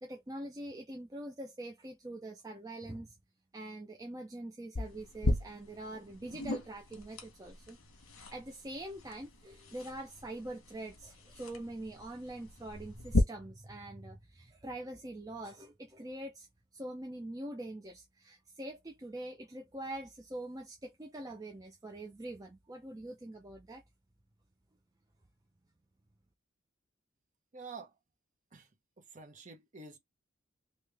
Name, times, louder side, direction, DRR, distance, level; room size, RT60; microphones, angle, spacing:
voice 1, 0.0-3.1 3.5-7.8 8.3-16.5 16.7-23.8, right 1 dB, 15° right, 0.5 m, -44 dB
sound 1, 4.8-13.2, left 2 dB, 85° left, 1.1 m, -38 dB
voice 2, 27.5-27.9 28.5-28.7 29.0-30.0, right 4 dB, 35° right, 0.9 m, -48 dB
3.1 x 2.9 x 3.4 m
head